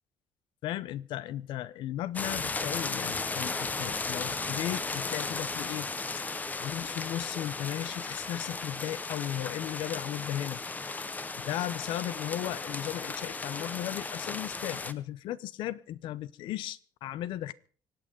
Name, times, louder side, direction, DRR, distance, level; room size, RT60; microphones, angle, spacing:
voice 1, 0.6-5.9 6.6-10.6 11.5-17.5, left 13 dB, 80° left, 0.8 m, -36 dB
sound 1, 2.1-14.9, left 3 dB, 20° left, 0.9 m, -35 dB
25.5 x 8.8 x 5.1 m
cardioid pair, 145°, 8 cm